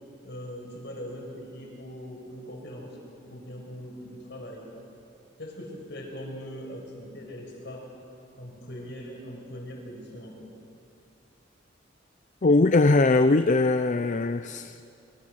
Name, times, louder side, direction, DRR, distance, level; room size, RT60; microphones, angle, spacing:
voice 1, 0.2-3.0 3.3-4.7 5.4-7.9 8.4-10.5, equal, 65° left, 0 dB, 6.5 m, -41 dB
voice 2, 12.4-14.8, left 3 dB, 40° left, 10 dB, 0.6 m, -21 dB
26.0 x 25.0 x 6.5 m, 2.7 s
head